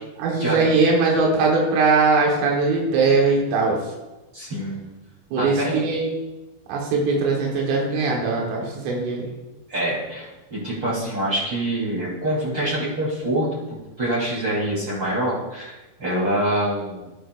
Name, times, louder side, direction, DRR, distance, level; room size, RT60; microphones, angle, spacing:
voice 1, 0.2-3.8 5.3-6.1 6.7-9.3, right 3 dB, 85° right, -2 dB, 4.1 m, -20 dB
voice 2, 4.3-4.8 5.4-5.8 9.7-13.5 14.0-17.1, right 1 dB, 25° right, -8 dB, 3.8 m, -25 dB
13.0 x 11.0 x 2.6 m, 1.1 s
omnidirectional pair, 5.7 m